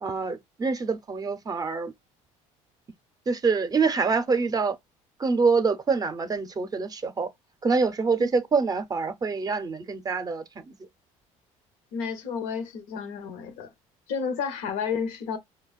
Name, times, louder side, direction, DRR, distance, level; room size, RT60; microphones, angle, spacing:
voice 1, 0.0-1.9 3.3-4.8 5.2-7.3 7.6-10.8, right 4 dB, 25° right, 0.6 m, -25 dB
voice 2, 11.9-13.7 14.1-15.4, left 6 dB, 80° left, 0.8 m, -31 dB
4.8 x 2.2 x 2.3 m
supercardioid pair, 95°, 14 cm